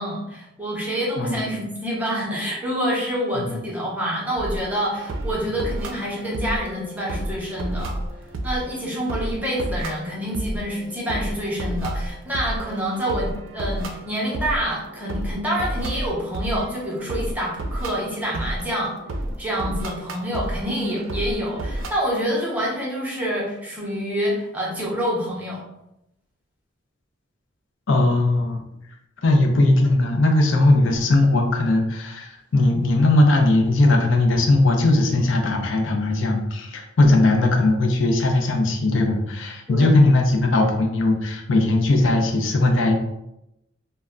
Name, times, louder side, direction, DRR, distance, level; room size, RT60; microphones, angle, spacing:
voice 1, 0.0-8.0 8.4-18.9 19.4-25.6 37.0-37.3 39.7-39.9, equal, 10° right, -4 dB, 0.7 m, -27 dB
sound 1, 4.4-21.9, right 1 dB, 80° right, 0.4 m, -31 dB
voice 2, 27.9-28.6 29.2-42.9, left 2 dB, 75° left, 2 dB, 0.5 m, -19 dB
2.2 x 2.1 x 3.6 m, 0.85 s
head